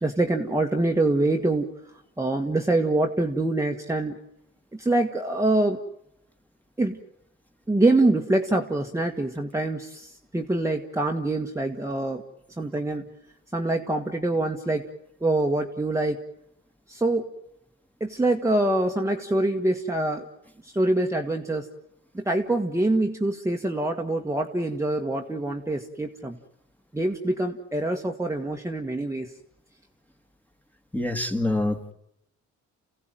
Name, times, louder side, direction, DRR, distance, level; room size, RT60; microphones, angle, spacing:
voice 1, 0.0-1.7 2.2-4.2 4.7-5.8 6.8-7.0 7.7-12.2 12.6-13.0 13.5-14.8 15.2-16.2 16.9-17.3 18.0-20.3 20.6-21.7 22.1-26.4 26.9-29.3, right 2 dB, 10° right, 2 dB, 1.5 m, -25 dB
voice 2, 30.9-31.9, left 2 dB, 5° left, 6 dB, 2.0 m, -26 dB
29.5 x 16.0 x 9.1 m, 0.83 s
cardioid pair, 90°, 30 cm